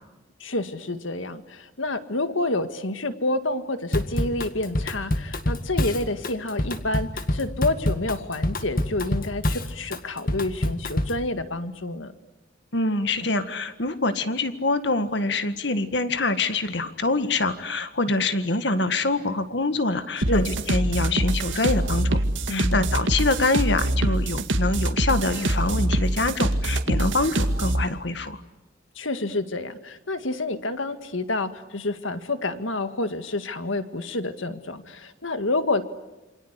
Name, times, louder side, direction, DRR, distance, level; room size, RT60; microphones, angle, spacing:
voice 1, 0.4-12.1 20.3-20.5 22.5-22.9 29.0-35.8, left 2 dB, 80° left, 10 dB, 1.9 m, -28 dB
Drum kit / Drum, 3.9-11.2, left 1 dB, 45° left, 1.9 m, -27 dB
voice 2, 12.7-22.2 22.5-28.4, left 2 dB, 60° left, 11 dB, 1.9 m, -25 dB
sound 1, 20.2-27.8, right 1 dB, 75° right, 2.1 m, -24 dB
28.0 x 26.0 x 8.3 m, 1.1 s
head